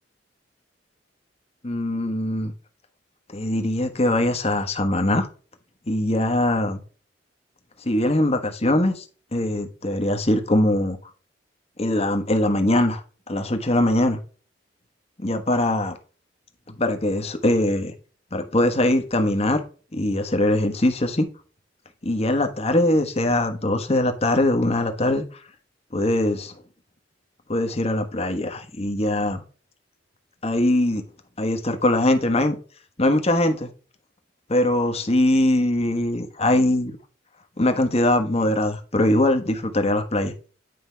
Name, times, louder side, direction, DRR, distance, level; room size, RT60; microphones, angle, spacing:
voice 1, 1.6-2.5 3.3-5.3 5.9-6.8 7.8-9.0 9.3-11.0 11.8-14.2 15.2-16.0 16.8-17.9 18.3-19.6 19.9-21.3 22.0-25.4 25.9-26.6 27.5-29.4 30.4-31.0 31.4-32.6 33.0-33.7 34.5-37.0 37.6-40.3, left 1 dB, 35° left, 6 dB, 1.2 m, -22 dB
9.5 x 5.2 x 3.4 m, 0.38 s
head